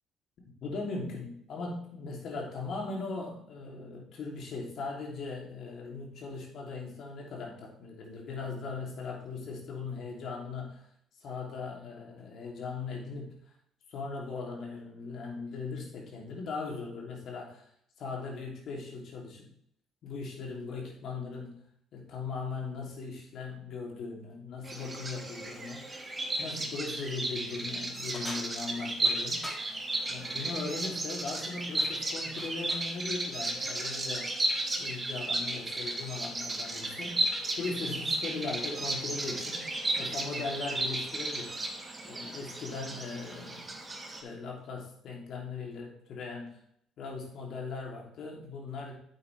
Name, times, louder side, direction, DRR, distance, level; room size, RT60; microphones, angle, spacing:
voice 1, 0.6-10.8 11.2-13.4 13.9-17.6 18.0-19.5 20.0-21.6 21.9-26.1 26.4-29.4 30.1-34.3 34.8-39.6 40.0-41.5 42.0-43.7 44.2-46.5 47.0-48.9, left 4 dB, 60° left, -1 dB, 3.0 m, -39 dB
Bird vocalization bird call bird song, 24.6-44.2, right 2 dB, 30° right, 2.1 m, -34 dB
sound 1, 28.1-29.7 31.1-31.5 31.8-32.9, equal, 15° left, 2.7 m, -44 dB
8.7 x 8.2 x 3.4 m, 0.68 s
hypercardioid pair, 55°, 0 cm